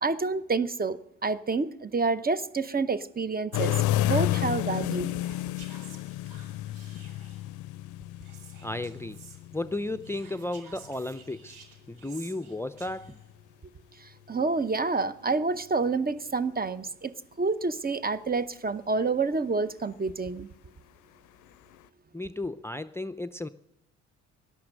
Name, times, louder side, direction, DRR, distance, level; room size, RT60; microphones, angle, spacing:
voice 1, 0.0-5.2 14.0-17.1 17.4-20.5, right 4 dB, 25° right, 0.9 m, -28 dB
sound 1, 3.5-11.3 12.9-13.3 21.7-21.8, left 15 dB, 65° left, 0.5 m, -31 dB
Whispering, 5.0-7.5 8.2-9.4 10.0-13.3, right 6 dB, 70° right, 2.5 m, -52 dB
voice 2, 8.6-9.2 9.5-11.5 11.9-13.2 22.1-23.5, left 2 dB, 10° left, 0.6 m, -34 dB
17.5 x 12.0 x 6.6 m
hypercardioid pair, 50°, 33 cm